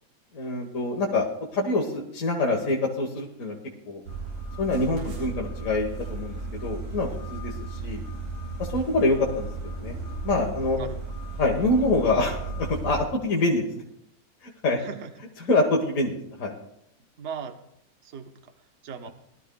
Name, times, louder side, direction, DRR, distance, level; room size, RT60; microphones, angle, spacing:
voice 1, 0.3-1.3 1.5-3.5 3.9-4.0 4.6-8.0 8.7-10.0 10.2-10.8 11.4-13.7 14.4-14.8 15.4-16.5, left 2 dB, 45° left, -1 dB, 1.6 m, -25 dB
sound 1, 4.0-13.0, right 3 dB, 85° right, 5.2 m, -35 dB
voice 2, 4.9-5.3 10.7-11.0 14.8-15.1 17.2-17.6 18.0-18.5 18.8-19.1, right 6 dB, 45° right, 7 dB, 1.0 m, -38 dB
20.5 x 12.5 x 2.3 m, 0.75 s
omnidirectional pair, 2.1 m